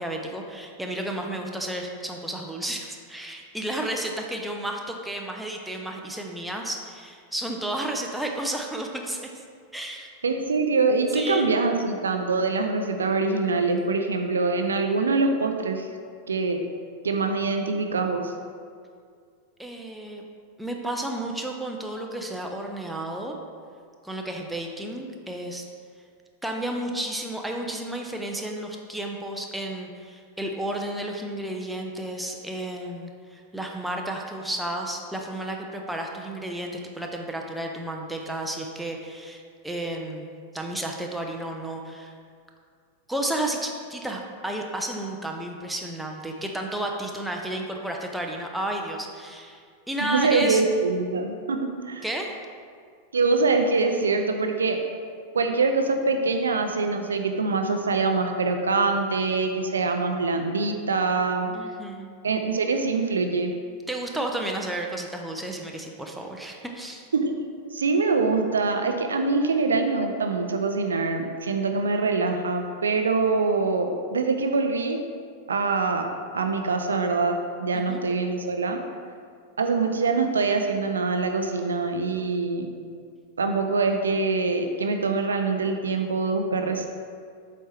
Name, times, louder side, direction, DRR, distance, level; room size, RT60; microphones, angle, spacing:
voice 1, 0.0-9.3 9.7-10.1 11.1-11.5 19.6-20.2 20.6-23.4 24.0-25.6 26.4-40.3 40.5-42.1 43.1-49.6 49.9-50.6 52.0-52.3 61.5-62.1 63.9-67.1 77.7-78.0, right 1 dB, 5° right, 1 dB, 0.7 m, -32 dB
voice 2, 10.2-15.9 16.3-16.6 17.0-18.3 50.1-52.0 53.1-54.8 55.3-61.5 62.2-63.5 67.1-67.4 67.7-75.0 75.5-76.1 76.3-78.8 79.6-82.7 83.4-86.9, right 3 dB, 70° right, 5 dB, 0.5 m, -24 dB
7.5 x 4.3 x 3.3 m, 2.1 s
figure-of-eight pair, 90°, 0 cm